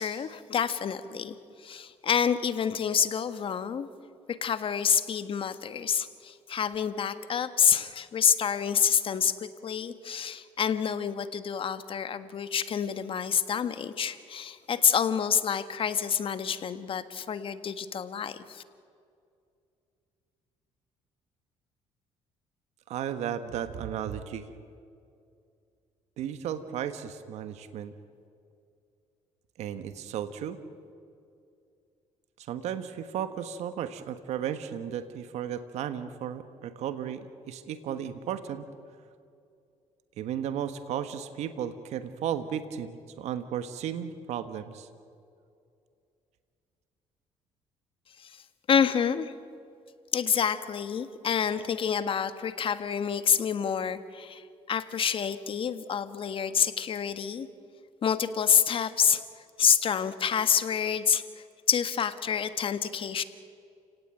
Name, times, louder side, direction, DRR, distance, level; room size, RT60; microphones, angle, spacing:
voice 1, 0.0-1.3 1.6-3.9 4.3-18.6 48.2-48.3 48.7-49.3 50.1-54.4 54.7-57.5 58.0-59.2 59.6-61.2 61.7-63.2, left 7 dB, 50° left, 11 dB, 1.6 m, -27 dB
voice 2, 22.9-24.4 26.2-27.9 29.6-30.6 32.5-38.7 40.2-44.9, right 9 dB, 75° right, 10 dB, 1.5 m, -34 dB
29.5 x 17.5 x 9.1 m, 2.4 s
cardioid pair, 85°, 11 cm